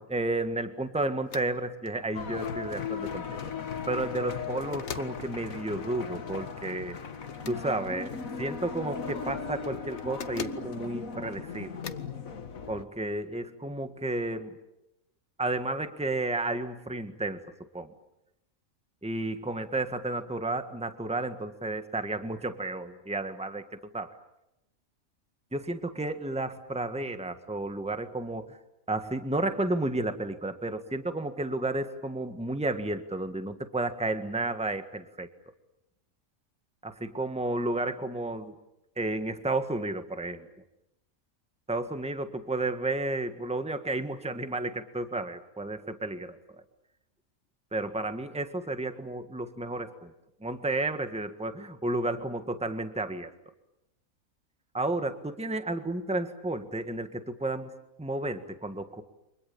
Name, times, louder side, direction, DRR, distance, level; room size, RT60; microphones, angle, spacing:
voice 1, 0.0-3.2 3.9-7.0 7.5-11.7 12.7-14.6 15.4-17.4 17.7-17.9 19.0-23.6 23.9-24.1 25.5-28.6 28.9-35.3 36.8-38.5 39.0-40.5 41.7-46.4 47.7-50.1 50.4-53.3 54.7-57.7 58.0-59.0, right 2 dB, 5° right, 8 dB, 1.6 m, -32 dB
sound 1, 1.3-1.5 1.9-2.0 3.9-4.3 4.7-5.2 7.3-7.6 9.9-10.7 11.8-12.1, left 6 dB, 55° left, 1.4 m, -41 dB
sound 2, 2.1-12.8, left 6 dB, 90° left, 2.0 m, -37 dB
29.5 x 26.0 x 7.1 m, 0.85 s
omnidirectional pair, 1.4 m